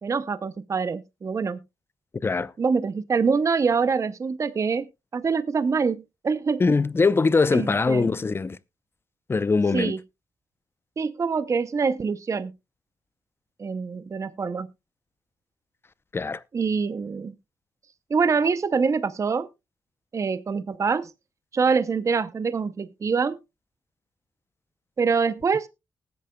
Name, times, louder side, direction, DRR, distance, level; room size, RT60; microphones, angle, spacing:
voice 1, 0.0-1.6 2.6-6.6 7.5-8.1 9.7-10.0 11.0-12.5 13.6-14.7 16.5-17.4 18.1-19.5 20.1-21.1 21.5-23.4 25.0-25.7, right 5 dB, 40° right, 0.6 m, -25 dB
voice 2, 2.2-2.5 6.6-8.6 9.3-9.9 16.1-16.4, left 4 dB, 30° left, 0.6 m, -22 dB
19.5 x 8.5 x 2.2 m
cardioid pair, 80°, 8 cm